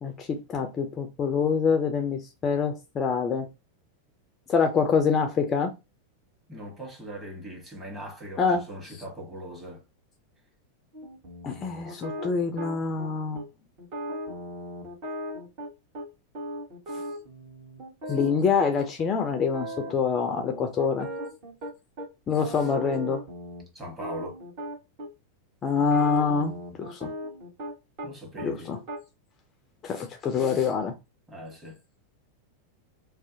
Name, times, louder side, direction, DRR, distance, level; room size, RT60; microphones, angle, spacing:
voice 1, 0.0-3.5 4.5-5.7 8.4-8.7 11.4-13.4 18.1-21.1 22.3-23.2 25.6-26.5 26.8-27.1 28.4-28.8 29.8-30.9, left 5 dB, 25° left, 0.4 m, -25 dB
voice 2, 6.5-9.8 23.7-24.4 28.0-28.8 31.3-31.8, right 1 dB, 15° right, 1.1 m, -40 dB
sound 1, 10.9-13.1 13.3-13.5 13.8-16.1 16.3-18.7 19.0-19.1 19.4-20.0 20.3-22.1 22.4-25.1 25.7-28.1 28.4-29.0, equal, 45° right, 1.1 m, -37 dB
2.6 x 2.0 x 2.6 m
figure-of-eight pair, 90°, 0 cm